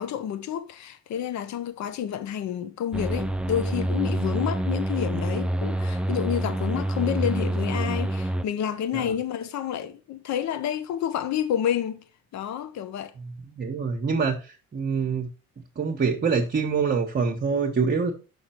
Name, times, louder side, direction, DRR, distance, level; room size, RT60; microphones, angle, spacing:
voice 1, 0.0-12.0 12.3-13.1, left 10 dB, 60° left, 0.9 m, -29 dB
sound 1, 2.9-8.4, right 1 dB, 5° right, 0.4 m, -27 dB
voice 2, 13.2-15.3 15.8-18.1, right 5 dB, 35° right, 1.1 m, -26 dB
6.4 x 5.6 x 4.4 m
cardioid pair, 105°, 31 cm